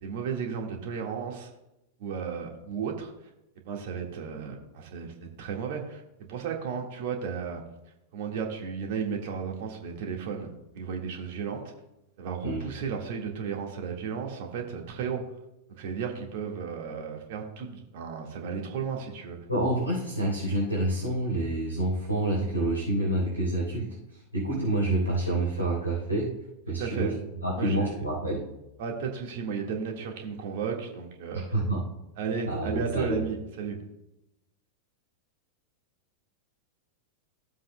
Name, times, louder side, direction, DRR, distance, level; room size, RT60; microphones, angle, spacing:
voice 1, 0.0-1.5 2.0-3.1 3.7-6.0 6.3-7.6 8.1-10.5 10.7-11.7 12.2-15.2 15.8-19.4 26.8-27.1 27.6-28.0 28.8-31.4 32.2-33.8, right 6 dB, 50° right, 2 dB, 1.7 m, -34 dB
voice 2, 19.5-23.9 24.3-26.3 26.7-27.1 27.4-28.4 31.3-31.8 32.5-33.2, right 1 dB, 85° left, -5 dB, 3.7 m, -28 dB
16.5 x 7.5 x 2.2 m, 0.89 s
figure-of-eight pair, 90°, 0 cm